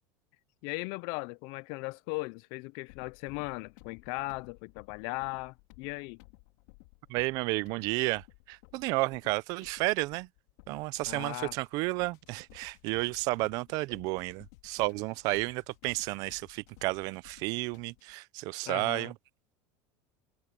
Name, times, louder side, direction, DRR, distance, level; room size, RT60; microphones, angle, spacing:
voice 1, 0.6-6.2 11.1-11.5 18.7-19.1, left 27 dB, 50° left, 0.4 m, -38 dB
sound 1, 2.9-18.1, left 23 dB, 65° left, 3.4 m, -57 dB
voice 2, 7.1-10.3 10.7-19.1, right 23 dB, 45° right, 0.5 m, -32 dB
cardioid pair, 175°, 9 cm